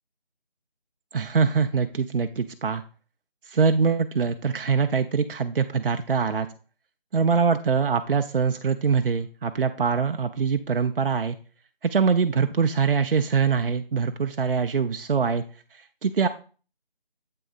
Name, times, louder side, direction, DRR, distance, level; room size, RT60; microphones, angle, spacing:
voice 1, 1.1-2.8 3.5-6.5 7.1-11.4 11.8-15.4 16.0-16.3, right 5 dB, 70° right, 7 dB, 0.5 m, -23 dB
8.0 x 7.6 x 2.4 m, 0.38 s
figure-of-eight pair, 165°, 29 cm